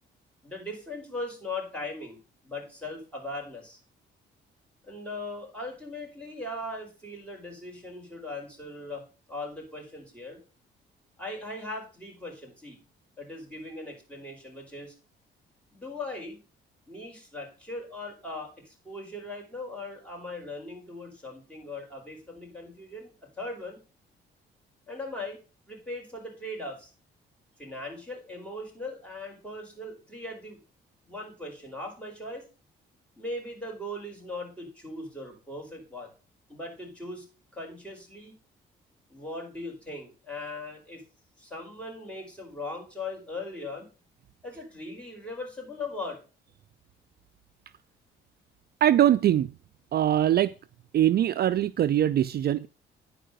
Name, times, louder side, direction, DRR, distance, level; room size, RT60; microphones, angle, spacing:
voice 1, 0.4-2.2 2.4-3.8 4.8-9.0 9.3-10.4 11.2-12.8 13.2-14.9 15.7-16.4 16.9-23.8 24.9-25.4 25.7-26.9 27.6-30.6 31.1-32.4 33.2-36.1 36.5-37.2 37.5-38.3 39.1-41.0 41.4-43.9 44.4-46.2, left 2 dB, 5° left, 5.1 m, -39 dB
voice 2, 48.8-49.5 49.9-50.5 50.9-52.7, right 11 dB, 55° right, 0.4 m, -22 dB
10.0 x 4.7 x 6.5 m
cardioid pair, 90°, 20 cm